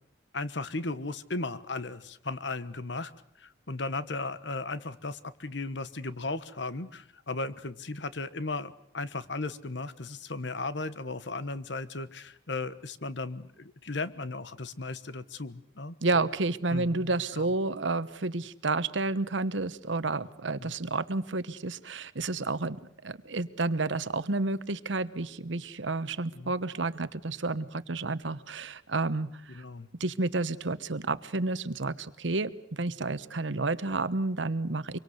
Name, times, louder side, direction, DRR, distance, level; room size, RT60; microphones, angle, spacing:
voice 1, 0.3-3.1 3.4-16.2 16.7-17.5 20.6-20.7 26.3-26.5 29.5-29.9 33.5-33.6, left 3 dB, 65° left, 14 dB, 1.3 m, -36 dB
voice 2, 16.0-29.6 30.0-35.0, right 3 dB, 75° right, 14 dB, 1.1 m, -30 dB
25.0 x 23.5 x 8.0 m, 0.66 s
head